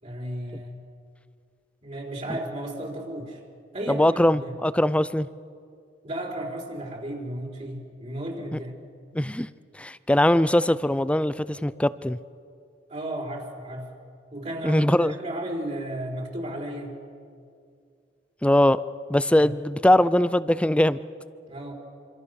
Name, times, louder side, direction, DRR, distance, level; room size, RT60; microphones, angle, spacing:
voice 1, 0.0-0.8 1.8-3.4 3.7-4.6 6.0-8.7 12.9-13.9 14.3-17.0 19.4-19.5 21.5-21.7, right 1 dB, 40° right, -2 dB, 4.0 m, -34 dB
voice 2, 3.9-5.3 9.1-9.5 9.7-12.2 14.6-15.1 18.4-18.8 19.1-21.0, left 1 dB, 5° left, 16 dB, 0.5 m, -21 dB
27.0 x 26.0 x 6.5 m, 2.4 s
head